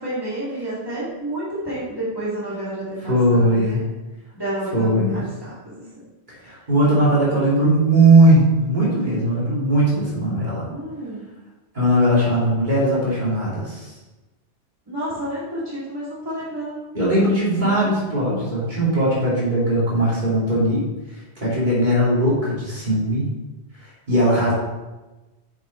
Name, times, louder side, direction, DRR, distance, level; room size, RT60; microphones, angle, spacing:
voice 1, 0.0-3.8 4.3-5.8 6.9-7.4 10.6-11.2 14.9-16.9 17.2-17.9, right 1 dB, 20° right, -9 dB, 2.3 m, -30 dB
voice 2, 3.0-3.8 4.7-5.2 6.4-10.7 11.7-13.9 16.9-20.8 21.4-23.2 23.8-24.5, right 1 dB, 40° right, -7 dB, 2.8 m, -19 dB
7.1 x 6.7 x 4.4 m, 1.1 s
omnidirectional pair, 1.2 m